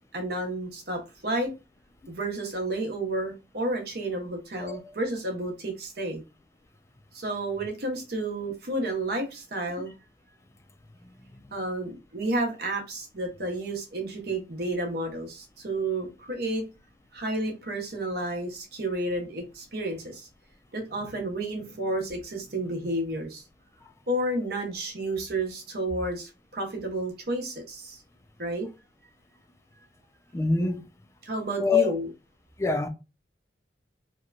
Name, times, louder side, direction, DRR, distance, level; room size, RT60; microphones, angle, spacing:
voice 1, 0.1-1.5 2.1-6.2 7.1-9.9 11.5-16.6 17.1-20.3 20.7-23.4 24.1-28.0 28.4-28.7 31.2-32.1, right 1 dB, 60° right, 0.8 m, -31 dB
voice 2, 4.6-4.9 11.0-11.1 30.3-30.8 31.6-31.9 32.6-32.9, left 4 dB, 15° left, 0.3 m, -25 dB
2.8 x 2.2 x 2.4 m
head